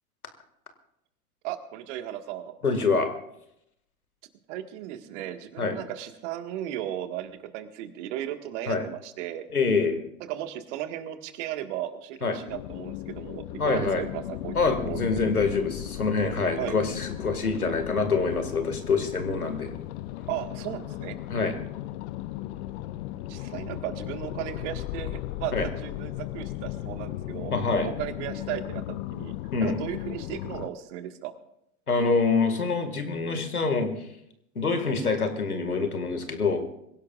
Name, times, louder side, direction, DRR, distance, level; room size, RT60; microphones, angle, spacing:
voice 1, 1.4-2.5 4.5-9.5 10.3-14.5 14.8-15.3 16.5-16.8 20.3-21.2 23.3-27.5 27.8-29.3 29.6-31.3, right 12 dB, 55° right, 7 dB, 1.8 m, -35 dB
voice 2, 2.6-3.1 5.6-5.7 8.7-8.8 9.5-10.0 12.2-12.4 13.6-14.0 14.5-19.7 21.3-21.6 25.5-25.7 27.5-27.9 29.5-29.8 31.9-33.9 34.6-36.6, left 4 dB, 90° left, 7 dB, 2.1 m, -25 dB
sound 1, 12.5-30.7, left 15 dB, 50° left, 0.7 m, -36 dB
25.0 x 16.5 x 2.5 m, 0.79 s
figure-of-eight pair, 90°, 43 cm